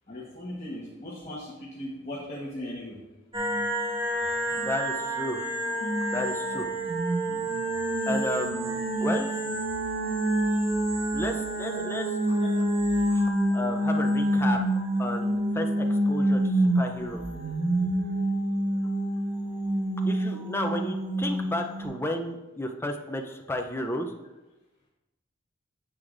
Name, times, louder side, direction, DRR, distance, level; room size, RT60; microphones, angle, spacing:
voice 1, 0.1-3.0 11.7-11.8 12.3-12.5, left 1 dB, 35° left, -6 dB, 1.3 m, -38 dB
sound 1, 3.3-21.9, right 1 dB, 30° right, 1.6 m, -27 dB
voice 2, 4.5-5.4 6.1-6.7 8.1-9.3 11.1-12.4 13.1-13.2 13.5-14.6 15.0-17.2 20.1-24.1, left 1 dB, 10° left, 3 dB, 0.6 m, -32 dB
9.3 x 7.8 x 2.6 m, 1.1 s
head